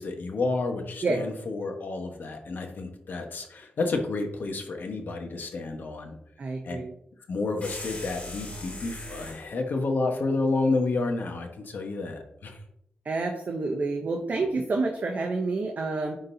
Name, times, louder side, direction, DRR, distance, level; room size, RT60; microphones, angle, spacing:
voice 1, 0.0-6.2 6.6-6.8 7.3-12.6, left 3 dB, 65° left, 4 dB, 1.2 m, -30 dB
voice 2, 6.4-6.9 13.1-16.2, right 3 dB, 50° right, 2 dB, 0.7 m, -28 dB
sound 1, 7.6-9.5, left 2 dB, 40° left, 2.4 m, -39 dB
9.9 x 3.9 x 2.7 m, 0.76 s
wide cardioid pair, 110°, 4 cm